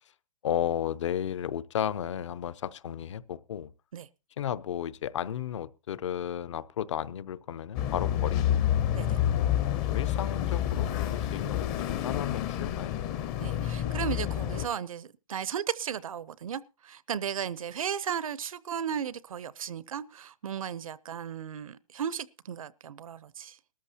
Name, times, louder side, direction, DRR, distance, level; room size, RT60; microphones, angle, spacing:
voice 1, 0.4-3.7 4.4-8.6 9.3-13.2, left 10 dB, 60° left, 0.7 m, -34 dB
sound 1, 7.7-14.7, left 11 dB, 20° left, 0.6 m, -29 dB
voice 2, 13.4-23.6, right 8 dB, 75° right, 0.8 m, -35 dB
20.0 x 13.5 x 2.8 m
hypercardioid pair, 165°, 18 cm